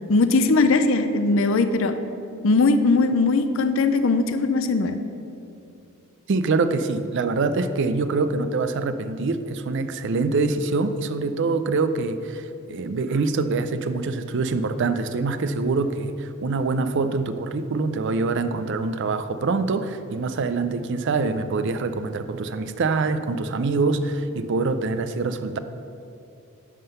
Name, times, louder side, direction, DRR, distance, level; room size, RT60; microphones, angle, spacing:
voice 1, 0.1-1.9 2.4-5.0, left 3 dB, 60° left, 9 dB, 0.5 m, -20 dB
voice 2, 6.3-25.6, right 3 dB, 55° right, 11 dB, 0.4 m, -25 dB
11.0 x 3.7 x 6.8 m, 2.6 s
head